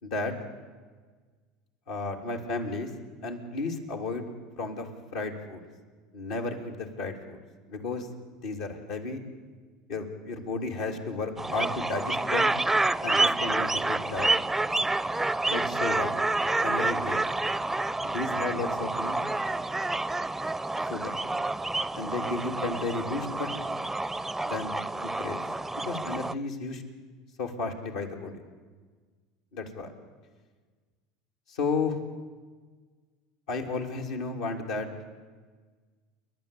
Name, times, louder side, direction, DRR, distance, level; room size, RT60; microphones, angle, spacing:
voice 1, 0.0-0.3 1.9-2.9 3.2-4.2 4.5-5.6 6.1-7.4 7.7-9.2 9.9-12.6 13.0-14.4 15.5-16.1 16.6-17.2 18.0-19.2 20.9-21.1 21.9-23.5 24.4-25.4 25.7-26.8 27.4-28.4 29.5-29.9 31.5-32.0 33.5-34.9, left 3 dB, 75° left, 2 dB, 3.3 m, -33 dB
sound 1, 11.4-26.3, right 2 dB, 10° right, 0.5 m, -28 dB
29.5 x 11.5 x 8.5 m, 1.5 s
hypercardioid pair, 90°, 3 cm